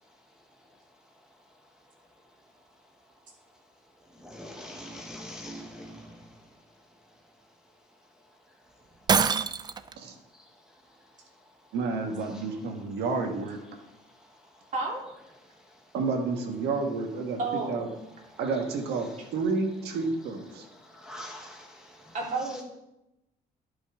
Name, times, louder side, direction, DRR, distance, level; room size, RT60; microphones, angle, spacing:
voice 1, 4.2-5.9 18.5-18.6 19.0-19.1 21.0-21.7 22.4-22.6, equal, 5° right, 0.9 m, -42 dB
Shatter, 9.1-9.9, right 6 dB, 25° right, 0.3 m, -24 dB
voice 2, 11.7-13.6 15.9-17.4 17.7-17.9 18.4-20.7, right 4 dB, 75° right, 1.4 m, -30 dB
voice 3, 16.9-18.0 20.6-20.7 22.1-22.6, right 3 dB, 50° right, 3.0 m, -32 dB
11.5 x 5.4 x 3.5 m
cardioid pair, 110°, 17 cm